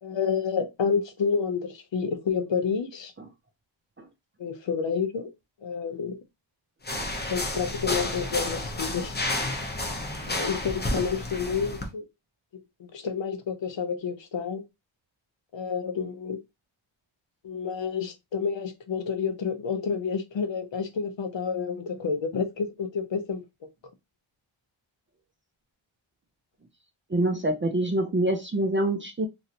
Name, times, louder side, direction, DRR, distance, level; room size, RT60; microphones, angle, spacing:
voice 1, 0.0-3.1 4.4-5.3 5.6-6.2 7.3-9.2 10.3-12.0 12.8-14.6 15.5-16.4 17.4-23.7, left 6 dB, 60° left, 0.7 m, -29 dB
sound 1, 6.8-11.9, left 1 dB, 20° left, 0.6 m, -31 dB
voice 2, 27.1-29.3, right 1 dB, 25° right, 0.4 m, -25 dB
3.1 x 2.5 x 2.8 m
wide cardioid pair, 145°, 50 cm